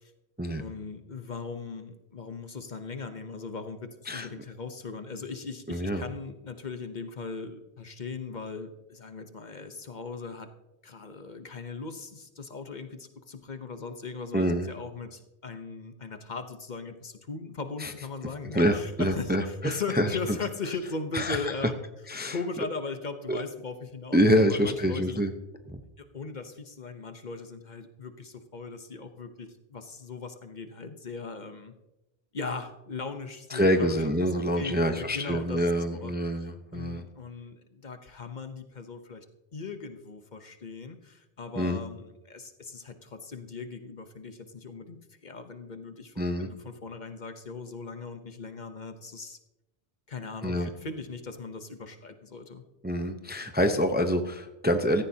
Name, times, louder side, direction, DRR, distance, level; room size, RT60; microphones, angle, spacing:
voice 1, 0.6-10.5 10.8-21.7 22.3-25.2 26.0-31.7 32.3-34.0 34.4-36.1 36.4-39.2 39.5-49.4 50.1-52.6, left 4 dB, 45° left, 8 dB, 0.9 m, -39 dB
voice 2, 5.7-6.0 14.3-14.7 17.8-17.9 18.5-20.4 21.1-21.5 22.1-22.4 23.3-23.4 24.1-25.3 25.7-25.8 33.5-37.0 41.6-41.8 46.2-46.5 50.4-50.7 52.8-55.0, equal, 10° right, 7 dB, 0.6 m, -26 dB
15.5 x 14.0 x 2.8 m, 0.97 s
omnidirectional pair, 1.1 m